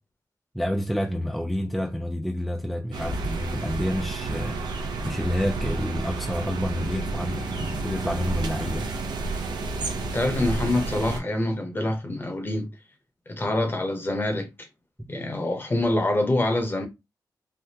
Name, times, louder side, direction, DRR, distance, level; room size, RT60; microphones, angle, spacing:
voice 1, 0.5-8.9, equal, ahead, 0.4 m, -29 dB
sound 1, 2.9-11.2, right 3 dB, 80° right, 0.6 m, -30 dB
voice 2, 10.1-12.7 13.3-14.7 15.1-16.9, left 1 dB, 30° left, 0.9 m, -25 dB
3.5 x 2.2 x 2.8 m
cardioid pair, 80°, 7 cm